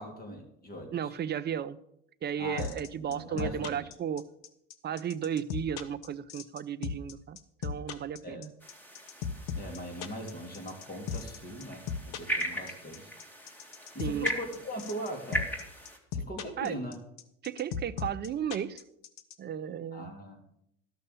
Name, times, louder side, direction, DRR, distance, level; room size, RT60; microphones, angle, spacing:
voice 1, 0.0-1.1 2.4-3.9 8.2-8.5 9.6-13.1 13.9-15.5 16.1-17.0 19.9-20.4, equal, 25° left, 3 dB, 2.9 m, -40 dB
voice 2, 0.9-1.8 2.2-4.2 4.8-8.5 14.0-14.3 16.6-16.8 17.4-18.8 19.4-20.1, right 9 dB, 30° right, 16 dB, 0.6 m, -34 dB
sound 1, 2.6-19.3, left 6 dB, 65° left, 1.1 m, -36 dB
sound 2, 8.6-16.0, right 1 dB, 5° left, 2.3 m, -38 dB
12.5 x 6.5 x 6.9 m, 0.77 s
hypercardioid pair, 85°, 35 cm